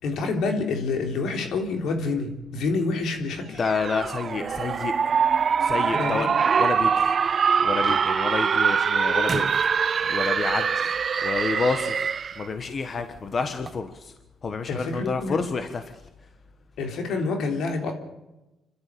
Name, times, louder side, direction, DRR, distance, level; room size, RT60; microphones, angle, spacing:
voice 1, 0.0-3.6 5.9-6.2 14.7-15.4 16.8-17.9, left 3 dB, 75° left, 4 dB, 3.5 m, -27 dB
voice 2, 3.5-5.1 5.6-6.3 6.6-9.7 10.1-11.0 11.2-14.1 14.4-16.0, left 4 dB, 40° left, 8 dB, 1.4 m, -29 dB
sound 1, 3.6-12.4, right 6 dB, 45° right, 0.6 m, -23 dB
sound 2, 4.4-5.2 5.6-8.4 8.7-9.0 9.3-10.5 11.3-11.4 12.1-12.3 13.5-13.7, right 4 dB, 30° right, 1.5 m, -36 dB
27.0 x 12.0 x 8.5 m, 0.99 s
cardioid pair, 90°, 0 cm